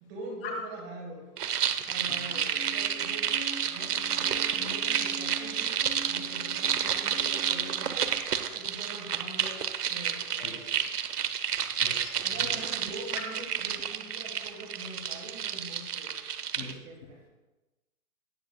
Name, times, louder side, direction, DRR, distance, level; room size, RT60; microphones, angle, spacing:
voice 1, 0.0-1.3 1.9-3.3 3.7-8.2 8.5-10.8 12.2-16.2 16.6-17.2, right 2 dB, 20° right, 1 dB, 1.5 m, -44 dB
sound 1, 1.4-16.7, right 8 dB, 85° right, 1.1 m, -30 dB
sound 2, 2.3-8.2, equal, 65° left, 2.1 m, -45 dB
voice 2, 11.8-12.5 16.6-16.8, left 7 dB, 40° left, 1 dB, 2.8 m, -42 dB
17.5 x 10.0 x 2.3 m, 1.1 s
hypercardioid pair, 160°, 45 cm